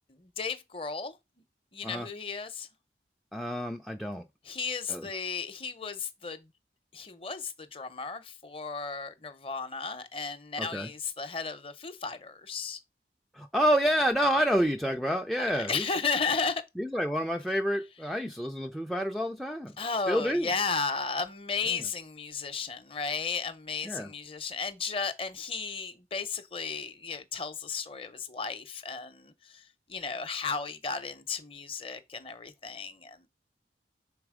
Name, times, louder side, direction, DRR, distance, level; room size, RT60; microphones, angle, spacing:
voice 1, 0.1-1.2 1.7-2.7 4.4-6.5 6.9-12.8 15.4-16.6 19.8-33.3, left 5 dB, 30° left, 0.7 m, -34 dB
voice 2, 3.3-4.2 4.9-5.1 10.6-10.9 13.3-15.9 16.8-19.7 20.1-20.5 23.9-24.1, equal, ahead, 0.3 m, -28 dB
5.9 x 3.9 x 4.9 m
head